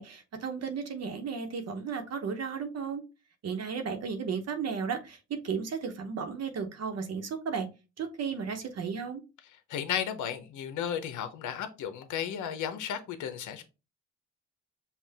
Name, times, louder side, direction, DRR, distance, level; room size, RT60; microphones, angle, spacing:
voice 1, 0.0-3.0 3.4-7.7 8.0-9.2, right 6 dB, 55° right, 1.0 m, -34 dB
voice 2, 9.7-13.6, left 9 dB, 80° left, 0.8 m, -34 dB
5.7 x 2.4 x 3.4 m
cardioid pair, 90°, 30 cm